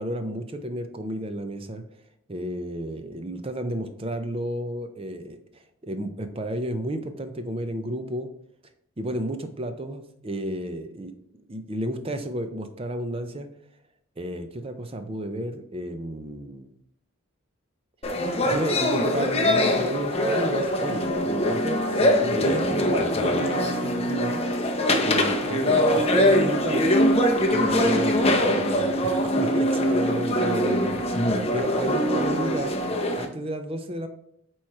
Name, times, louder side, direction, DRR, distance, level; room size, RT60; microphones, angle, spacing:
voice 1, 0.0-1.8 2.3-8.3 9.0-13.5 14.2-16.7 18.4-24.4 25.1-27.0 27.4-32.8 33.2-34.1, right 1 dB, 25° right, 8 dB, 0.5 m, -32 dB
sound 1, 18.0-33.3, left 1 dB, 30° left, 0.7 m, -23 dB
8.6 x 3.1 x 4.7 m, 0.73 s
head